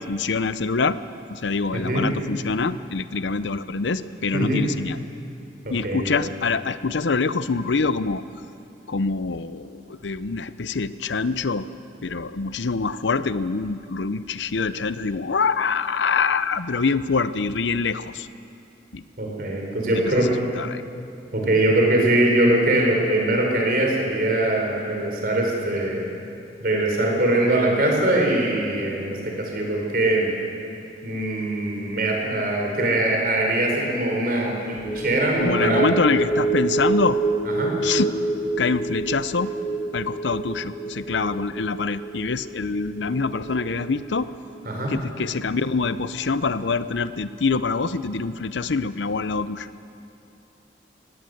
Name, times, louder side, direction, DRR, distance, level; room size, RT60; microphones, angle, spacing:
voice 1, 0.1-1.0 1.3-5.0 5.7-8.2 8.9-11.7 12.0-18.3 18.9-19.0 19.9-20.8 35.4-37.2 37.8-38.1 38.6-39.5 39.9-44.3 44.9-49.7, left 4 dB, 85° left, 14 dB, 0.7 m, -25 dB
voice 2, 1.7-2.1 4.3-4.6 5.6-6.1 19.2-20.3 21.3-26.0 26.6-30.3 31.0-35.9 37.6-37.7 44.6-44.9, right 1 dB, 55° right, 0 dB, 4.7 m, -22 dB
sound 1, 34.8-45.4 45.7-45.9, right 3 dB, 20° left, 1.6 m, -28 dB
19.5 x 17.0 x 7.9 m, 2.7 s
head